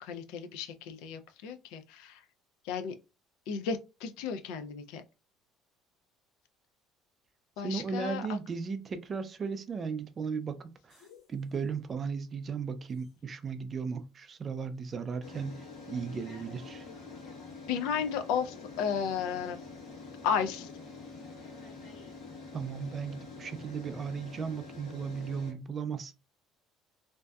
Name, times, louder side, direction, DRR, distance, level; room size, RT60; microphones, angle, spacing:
voice 1, 0.0-2.2 2.7-2.9 3.5-5.0 7.6-8.2 17.7-19.6 20.2-20.7, left 7 dB, 90° left, 0.3 m, -33 dB
voice 2, 7.6-16.9 22.5-26.1, right 5 dB, 30° right, 0.3 m, -36 dB
sound 1, 10.9-11.3 13.0-13.1 15.2-25.5, left 4 dB, 70° left, 1.0 m, -46 dB
2.6 x 2.1 x 2.3 m
cardioid pair, 140°, 0 cm